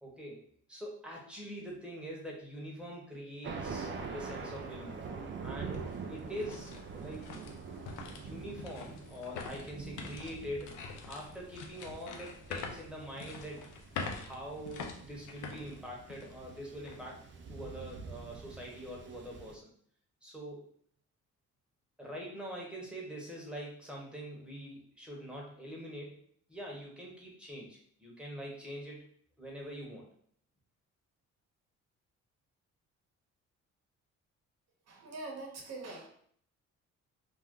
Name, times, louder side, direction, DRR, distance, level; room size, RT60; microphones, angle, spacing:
voice 1, 0.0-7.4 8.1-13.7 14.2-17.2 17.5-19.7 20.2-20.7 22.0-29.1 29.4-30.1, equal, 5° right, -3 dB, 1.0 m, -44 dB
Thunder, 3.4-19.6, right 5 dB, 40° right, 0.4 m, -45 dB
sound 1, 4.9-5.0 5.5-16.4 16.8-17.0 17.6-17.9, left 5 dB, 80° left, 0.6 m, -45 dB
voice 2, 34.9-36.1, right 2 dB, 60° right, -1 dB, 1.0 m, -43 dB
2.6 x 2.2 x 3.6 m, 0.62 s
cardioid pair, 90°, 30 cm